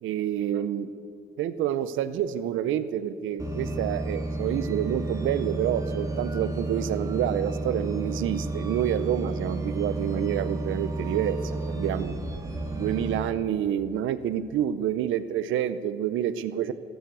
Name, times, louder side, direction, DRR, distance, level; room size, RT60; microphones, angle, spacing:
voice 1, 0.0-0.9 1.4-12.1 12.7-16.7, right 10 dB, 80° right, 14 dB, 0.6 m, -28 dB
sound 1, 3.4-13.2, right 2 dB, 15° right, 2.2 m, -32 dB
14.0 x 12.5 x 8.2 m, 2.5 s
cardioid pair, 90°, 20 cm